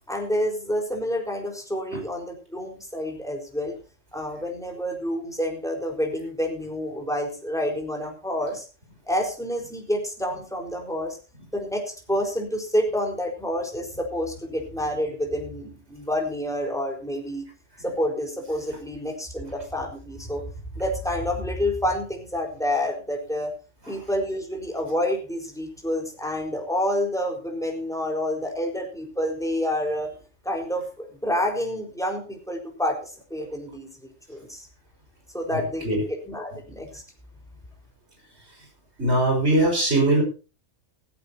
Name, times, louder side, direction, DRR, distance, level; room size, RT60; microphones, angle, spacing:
voice 1, 0.1-3.7 4.1-8.7 9.1-11.2 11.5-17.5 17.8-20.4 20.7-23.5 23.9-30.1 30.4-33.9 34.3-34.7 35.3-37.0, equal, ahead, 1 dB, 4.3 m, -28 dB
voice 2, 35.5-36.0 39.0-40.2, right 1 dB, 55° right, 3 dB, 5.6 m, -21 dB
17.0 x 15.0 x 2.8 m, 0.34 s
omnidirectional pair, 1.3 m